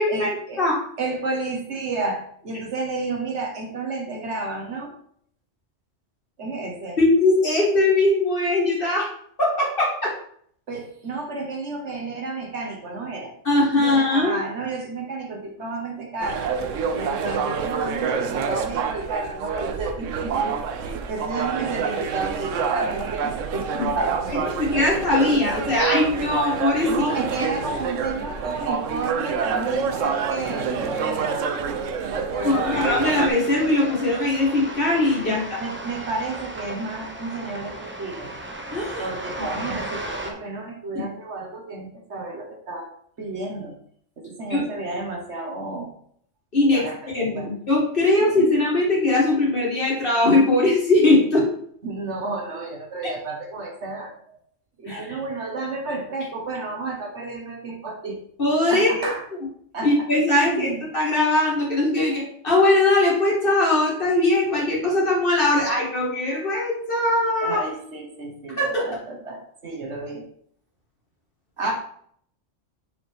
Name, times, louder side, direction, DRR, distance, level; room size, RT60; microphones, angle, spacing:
voice 1, 0.1-0.6 1.0-4.9 6.4-7.0 10.7-13.4 13.8-16.5 16.9-23.7 24.0-24.8 26.8-31.5 32.1-32.9 33.4-33.5 35.3-38.3 39.0-42.9 43.2-43.7 44.2-45.9 46.6-47.5 48.2-48.3 51.8-54.4 54.8-58.2 58.7-59.3 59.7-59.9 60.3-60.8 67.4-70.2 71.6-71.7, right 3 dB, 65° right, 1 dB, 1.5 m, -31 dB
voice 2, 7.0-9.1 9.4-10.1 13.5-14.3 23.8-23.9 24.3-27.1 32.4-35.6 38.7-39.1 39.6-39.7 41.0-41.1 44.5-44.6 46.5-46.8 47.1-51.5 54.9-55.2 58.4-59.1 59.8-67.6 68.6-68.8 71.6-71.7, left 2 dB, 45° left, -3 dB, 2.1 m, -20 dB
sound 1, 16.2-33.3, right 6 dB, 85° right, 1.0 m, -27 dB
sound 2, 32.7-40.3, right 1 dB, 10° right, 0.7 m, -35 dB
6.3 x 5.0 x 3.4 m, 0.63 s
omnidirectional pair, 1.3 m